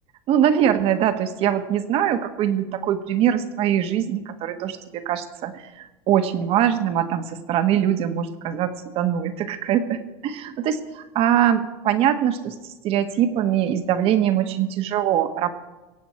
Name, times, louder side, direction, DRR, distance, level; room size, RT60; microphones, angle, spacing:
voice 1, 0.3-12.5 12.8-15.5, right 10 dB, 50° right, 9 dB, 1.4 m, -22 dB
23.5 x 8.6 x 4.5 m, 1.1 s
supercardioid pair, 120°, 13 cm